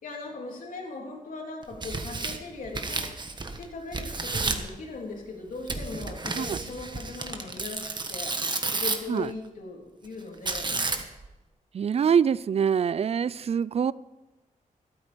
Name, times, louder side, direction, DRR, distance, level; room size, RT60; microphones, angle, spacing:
voice 1, 0.0-3.0 3.6-8.4 8.7-10.7, left 3 dB, 85° left, 0 dB, 3.4 m, -39 dB
Tearing, 1.6-3.6 3.9-4.7 5.7-9.2 10.5-11.3, right 3 dB, 35° right, 1.3 m, -31 dB
voice 2, 11.7-13.9, right 7 dB, 50° right, 20 dB, 0.4 m, -24 dB
13.5 x 12.5 x 5.2 m, 1.1 s
wide cardioid pair, 140°, 14 cm